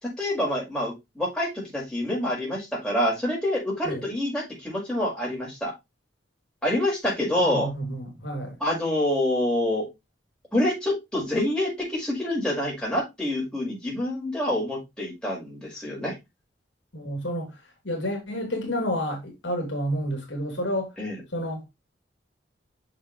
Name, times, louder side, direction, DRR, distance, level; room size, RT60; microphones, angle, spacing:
voice 1, 0.0-5.7 6.6-7.7 8.6-9.9 10.5-16.1 21.0-21.2, left 1 dB, 5° left, 5.4 m, -27 dB
voice 2, 7.5-8.6 16.9-17.5 17.8-20.9 21.3-21.7, equal, 70° left, 3.4 m, -30 dB
7.6 x 6.6 x 3.2 m
head